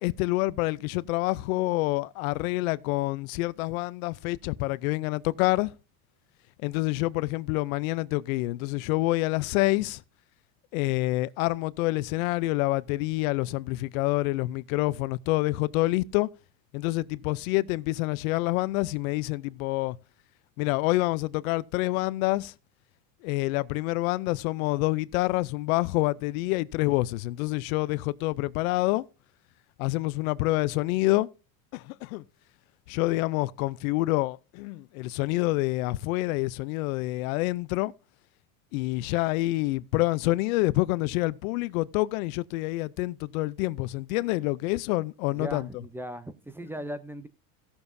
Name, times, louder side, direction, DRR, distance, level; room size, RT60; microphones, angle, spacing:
voice 1, 0.0-5.7 6.6-10.0 10.7-16.3 16.7-20.0 20.6-22.5 23.2-29.1 29.8-31.3 31.7-32.2 32.9-37.9 38.7-45.8, left 20 dB, 80° left, 0.6 m, -27 dB
voice 2, 45.3-47.3, equal, 5° right, 0.6 m, -38 dB
17.0 x 7.0 x 2.6 m
supercardioid pair, 125°, 42 cm